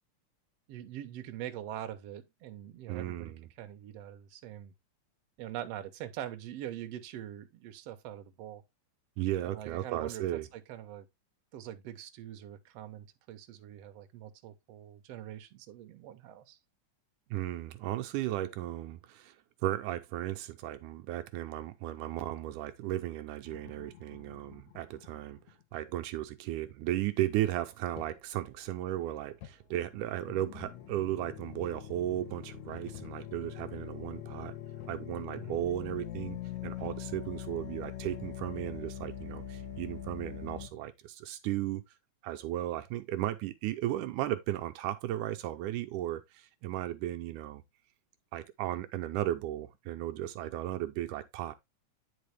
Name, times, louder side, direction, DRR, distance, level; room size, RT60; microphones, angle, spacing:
voice 1, 0.7-3.3 3.6-4.7 5.4-8.6 9.4-10.2 10.5-11.1 11.5-16.6 35.3-35.6, right 11 dB, 65° right, 1.9 m, -43 dB
voice 2, 2.9-3.5 9.2-10.5 17.3-19.4 19.6-25.4 25.7-34.6 34.9-36.4 36.6-41.8 42.2-47.6 48.3-51.5, right 13 dB, 85° right, 2.3 m, -35 dB
sound 1, 23.5-25.5 28.0-28.2 29.4-29.5 29.9-40.7, left 11 dB, 70° left, 2.4 m, -43 dB
9.4 x 5.0 x 3.3 m
omnidirectional pair, 3.6 m